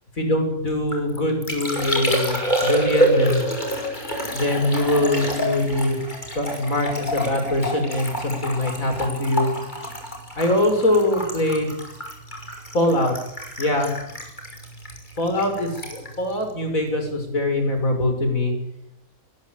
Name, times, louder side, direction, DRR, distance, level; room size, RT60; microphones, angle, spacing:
voice 1, 0.2-3.4 4.3-6.0 6.3-9.5 10.4-11.7 12.7-13.1 13.6-13.9 15.2-18.5, left 1 dB, 70° left, 5 dB, 6.4 m, -22 dB
Liquid, 0.7-17.3 17.6-18.1, equal, 30° left, 5.9 m, -28 dB
21.0 x 20.0 x 9.1 m, 0.78 s
omnidirectional pair, 1.5 m